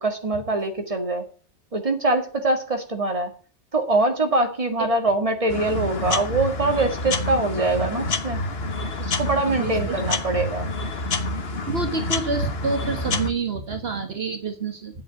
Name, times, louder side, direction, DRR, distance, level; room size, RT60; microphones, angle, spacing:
voice 1, 0.0-1.2 1.7-3.3 3.7-8.4 9.0-10.7, right 2 dB, 30° right, 4 dB, 1.9 m, -23 dB
sound 1, 5.5-13.3, left 2 dB, 60° left, 1.5 m, -28 dB
voice 2, 9.5-10.0 11.7-15.0, right 4 dB, 60° right, 6 dB, 1.5 m, -28 dB
9.5 x 8.1 x 8.2 m, 0.40 s
omnidirectional pair, 1.2 m